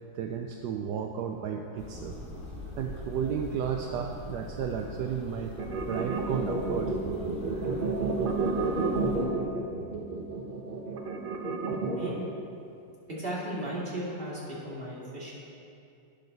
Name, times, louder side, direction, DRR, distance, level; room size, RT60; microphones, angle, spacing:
voice 1, 0.1-2.1 2.8-5.5 5.9-6.9, right 7 dB, 70° right, 3 dB, 1.0 m, -33 dB
sound 1, 1.8-9.2, left 2 dB, 5° right, 1.6 m, -42 dB
sound 2, 5.6-12.3, right 3 dB, 50° right, 0.6 m, -30 dB
voice 2, 13.1-15.3, right 1 dB, 25° right, -6 dB, 2.4 m, -35 dB
12.0 x 9.6 x 4.0 m, 2.6 s
omnidirectional pair, 2.2 m